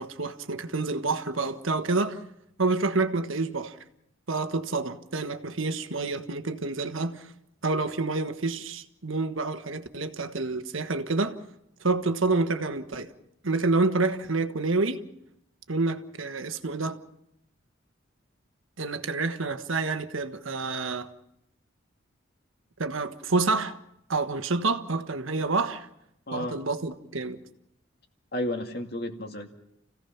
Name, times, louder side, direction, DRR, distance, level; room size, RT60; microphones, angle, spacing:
voice 1, 0.0-2.2 2.6-3.8 4.3-7.3 7.6-11.4 11.8-13.1 13.4-15.0 15.7-17.0 18.8-21.1 22.8-23.8 24.1-25.9 26.3-27.4, right 3 dB, 80° right, 1.4 m, -28 dB
voice 2, 28.3-29.5, left 1 dB, 50° left, 2.3 m, -32 dB
30.0 x 16.5 x 5.9 m
head